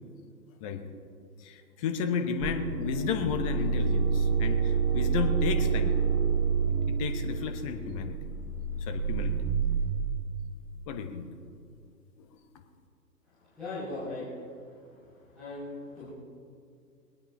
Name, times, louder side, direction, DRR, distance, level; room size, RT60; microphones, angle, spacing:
voice 1, 1.4-6.0 6.7-8.2 8.8-9.3 10.9-11.2, left 6 dB, 20° left, 6 dB, 0.9 m, -33 dB
sound 1, 2.4-9.9, right 5 dB, 35° right, 4.2 m, -28 dB
voice 2, 13.6-14.3 15.3-15.7 16.0-16.1, left 2 dB, ahead, -19 dB, 0.4 m, -37 dB
21.5 x 8.9 x 5.2 m, 2.3 s
figure-of-eight pair, 135°, 50 cm